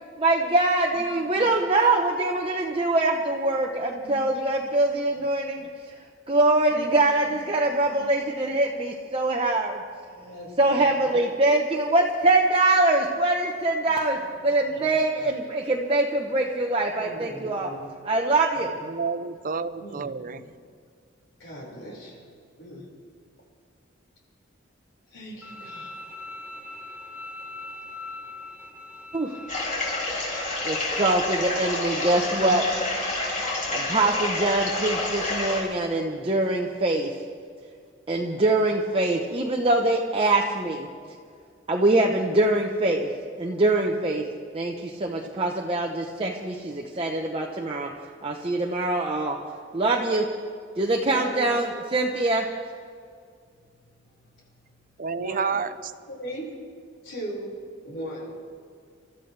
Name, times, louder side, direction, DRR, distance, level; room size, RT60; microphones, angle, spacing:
voice 1, 0.2-5.7 6.3-9.8 10.6-14.2 14.4-17.7 18.0-18.7 29.1-29.3 30.6-32.6 33.7-37.1 38.1-40.9 41.7-43.1 43.4-44.2 44.5-47.9 48.2-49.4 49.7-50.3 50.8-52.5, right 2 dB, 30° right, -1 dB, 0.9 m, -23 dB
voice 2, 10.1-11.1 14.3-14.4 14.7-15.3 16.9-17.9 18.5-18.7 19.0-19.1 19.7-20.5 21.4-22.2 22.6-22.9 25.1-26.0 29.3-29.7 32.6-32.9 51.1-51.5 55.1-55.6 56.1-56.6 57.0-57.5 57.8-58.4, right 1 dB, 75° left, -3 dB, 5.4 m, -39 dB
voice 3, 18.8-20.4 55.0-55.9, right 5 dB, 45° right, 13 dB, 0.6 m, -30 dB
Bowed string instrument, 25.4-30.4, left 2 dB, 10° right, 1.5 m, -41 dB
sound 1, 29.5-35.6, left 2 dB, 40° left, 4.7 m, -28 dB
28.5 x 13.5 x 3.4 m, 2.2 s
head